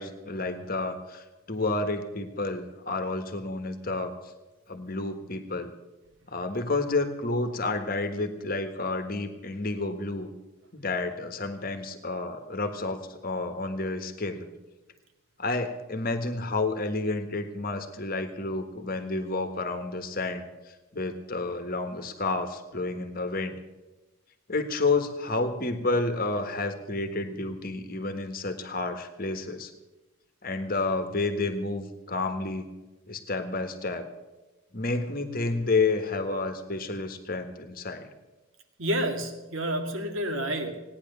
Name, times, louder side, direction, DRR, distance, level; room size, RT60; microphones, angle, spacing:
voice 1, 0.0-4.1 4.7-5.7 6.3-10.3 10.7-14.5 15.4-23.6 24.5-29.7 30.4-32.6 33.1-34.0 34.7-38.1, left 3 dB, 40° left, 8 dB, 1.4 m, -30 dB
voice 2, 38.8-40.8, right 1 dB, 65° right, 5 dB, 2.0 m, -29 dB
17.5 x 9.9 x 6.9 m, 1.1 s
head